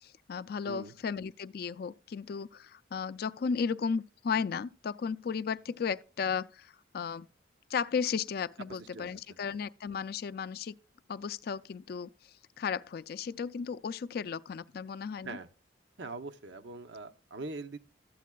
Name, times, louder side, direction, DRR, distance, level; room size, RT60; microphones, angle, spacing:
voice 1, 0.0-7.3 7.7-10.7 11.1-12.1 12.6-15.4, left 6 dB, 55° left, 0.3 m, -34 dB
voice 2, 0.6-0.9 8.9-9.4 15.2-15.5 16.0-17.8, right 3 dB, 75° right, 0.7 m, -42 dB
13.5 x 8.3 x 2.2 m
head